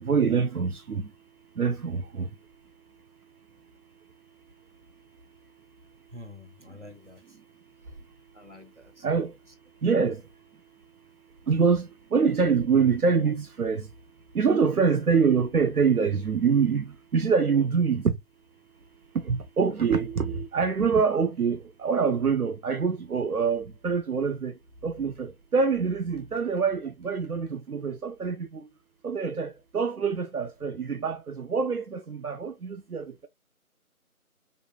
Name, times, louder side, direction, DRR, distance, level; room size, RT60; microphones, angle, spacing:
voice 1, 0.0-1.0 1.6-2.3 9.0-9.3 9.8-10.2 11.5-13.9 14.3-16.9 17.1-18.2 19.2-24.5 24.8-28.5 29.0-33.3, right 5 dB, 80° right, 0.7 m, -25 dB
voice 2, 6.1-7.2 8.3-9.0, left 2 dB, 55° right, 1.2 m, -47 dB
5.3 x 3.0 x 2.3 m
figure-of-eight pair, 175°, 44 cm